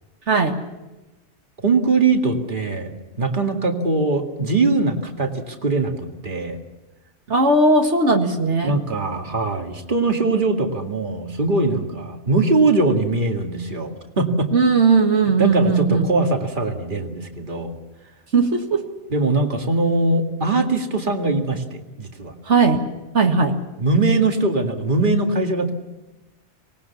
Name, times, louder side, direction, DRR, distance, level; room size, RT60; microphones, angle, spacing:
voice 1, 1.6-2.9 3.2-6.6 8.6-14.5 15.4-17.8 19.1-22.3 23.8-25.7, right 3 dB, 45° right, 3 dB, 2.3 m, -21 dB
voice 2, 7.3-8.7 14.5-16.1 18.3-18.8 22.5-22.8 23.1-23.5, right 3 dB, 80° right, 3 dB, 2.2 m, -17 dB
25.5 x 19.0 x 7.1 m, 1.1 s
omnidirectional pair, 1.2 m